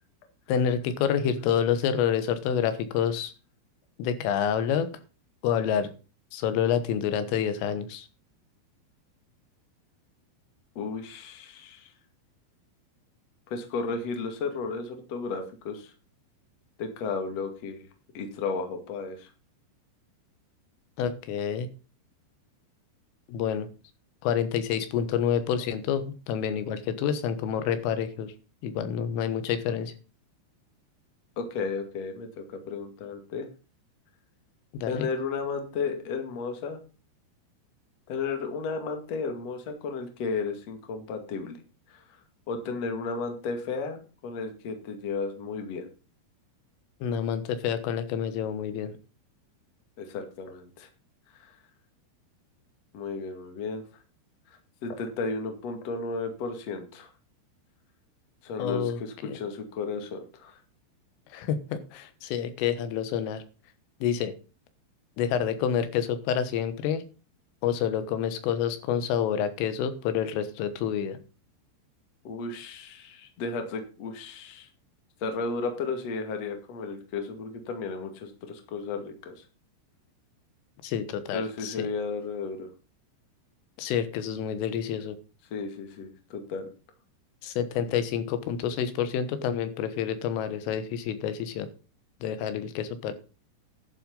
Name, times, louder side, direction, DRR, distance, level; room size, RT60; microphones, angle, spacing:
voice 1, 0.5-3.3 4.0-4.9 5.4-5.9 6.3-8.1 21.0-21.7 23.3-23.7 24.2-28.3 28.6-29.9 34.7-35.1 47.0-48.9 58.6-59.4 61.3-63.4 64.0-64.3 65.2-67.0 67.6-71.2 80.8-81.9 83.8-85.2 87.4-91.7 92.2-93.1, left 8 dB, 90° left, 11 dB, 3.9 m, -28 dB
voice 2, 10.8-11.9 13.5-15.9 16.8-17.8 18.1-19.3 31.4-33.5 34.9-36.8 38.1-41.6 41.9-42.0 42.5-45.9 50.0-50.9 51.4-51.5 52.9-53.8 54.8-57.1 58.4-60.6 72.2-74.7 75.2-79.4 81.3-82.7 85.5-86.7, left 4 dB, 45° left, 5 dB, 2.5 m, -34 dB
11.5 x 7.5 x 5.4 m, 0.34 s
omnidirectional pair, 5.6 m